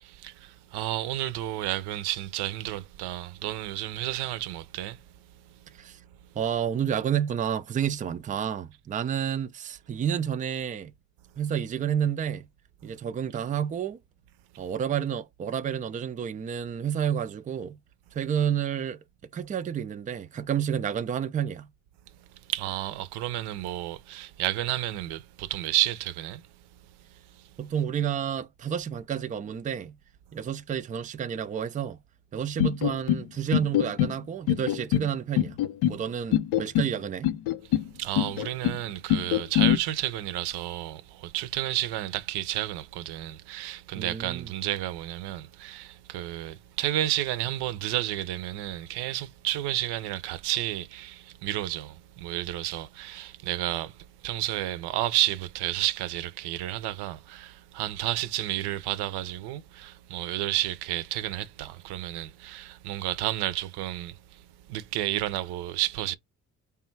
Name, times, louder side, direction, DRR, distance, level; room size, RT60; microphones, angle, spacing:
voice 1, 0.0-5.0 22.5-26.4 37.9-53.9 54.2-64.4 64.7-66.2, right 14 dB, 70° right, 0.6 m, -31 dB
voice 2, 6.4-10.9 11.4-12.5 12.8-14.0 14.6-17.8 18.1-19.0 19.3-21.7 27.6-29.9 30.3-32.0 32.3-35.6 35.9-37.3 44.0-44.5, right 8 dB, 20° right, 0.3 m, -30 dB
sound 1, 32.6-33.2 33.5-34.1 34.5-35.1 35.4-36.0 36.3-36.9 37.2-37.9 38.2-38.8 39.1-39.8, left 11 dB, 75° left, 0.5 m, -24 dB
3.4 x 2.3 x 4.4 m
hypercardioid pair, 50°, 41 cm